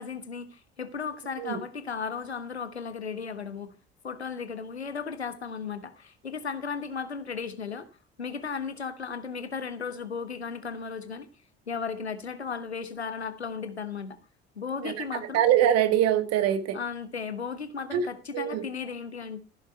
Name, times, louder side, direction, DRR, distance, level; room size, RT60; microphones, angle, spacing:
voice 1, 0.0-3.7 4.0-7.9 8.2-11.3 11.7-14.2 14.5-15.4 16.7-19.4, left 5 dB, 85° left, 1.2 m, -35 dB
voice 2, 15.3-16.8 17.9-18.0 18.3-18.6, right 10 dB, 50° right, 2.0 m, -23 dB
15.5 x 7.2 x 4.5 m
figure-of-eight pair, 55°, 32 cm